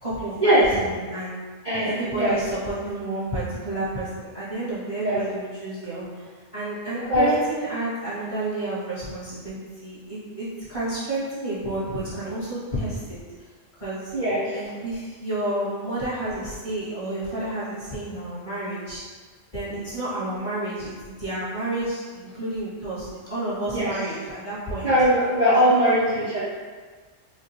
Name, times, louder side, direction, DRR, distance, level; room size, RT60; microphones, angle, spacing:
voice 1, 0.0-1.5 1.8-6.3 6.5-13.2 13.8-14.1 14.5-19.0 19.5-24.9 25.7-26.0, right 1 dB, 25° left, -11 dB, 1.2 m, -30 dB
voice 2, 1.6-2.4 5.0-5.2 7.1-7.3 14.1-14.6 23.7-23.9 24.8-26.4, equal, 45° right, -8 dB, 0.6 m, -20 dB
4.4 x 2.3 x 2.8 m, 1.5 s
omnidirectional pair, 1.3 m